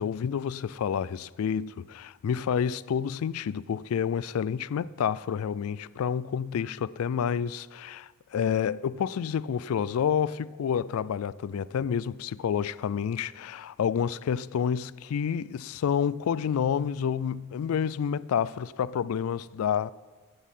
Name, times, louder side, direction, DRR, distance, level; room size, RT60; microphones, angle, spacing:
voice 1, 0.0-19.9, left 7 dB, 75° left, 0.3 m, -29 dB
14.5 x 8.5 x 5.5 m
head